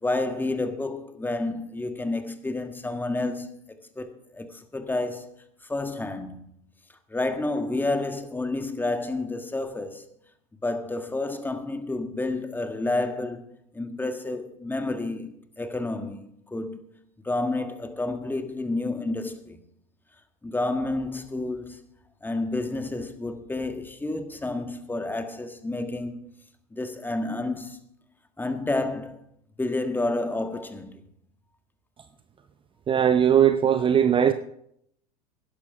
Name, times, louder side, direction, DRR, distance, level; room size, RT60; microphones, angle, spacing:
voice 1, 0.0-5.3 5.7-6.4 7.1-10.0 10.6-13.5 13.7-16.8 17.2-19.6 20.4-21.8 22.2-26.3 26.7-27.8 28.4-29.2 29.6-31.0, left 2 dB, 10° left, 1.6 m, -30 dB
voice 2, 32.9-34.3, right 9 dB, 25° right, 0.7 m, -19 dB
12.5 x 10.5 x 5.2 m
hypercardioid pair, 90°, 21 cm